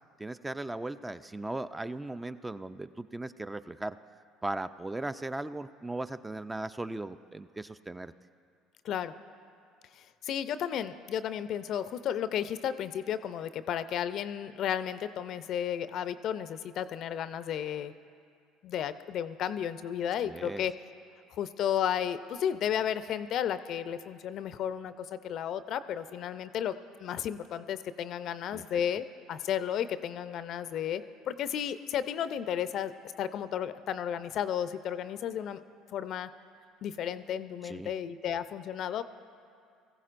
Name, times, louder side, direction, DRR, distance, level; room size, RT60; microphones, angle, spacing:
voice 1, 0.2-4.0 4.4-8.1 20.2-20.6 28.5-28.6 37.6-37.9, right 2 dB, 15° right, 12 dB, 0.4 m, -37 dB
voice 2, 10.0-17.9 18.6-20.7 21.3-26.7 27.0-32.9 33.2-35.6 35.9-36.3 36.8-39.0, left 9 dB, 55° left, 13 dB, 0.5 m, -33 dB
22.0 x 15.0 x 2.5 m, 2.3 s
hypercardioid pair, 65°, 0 cm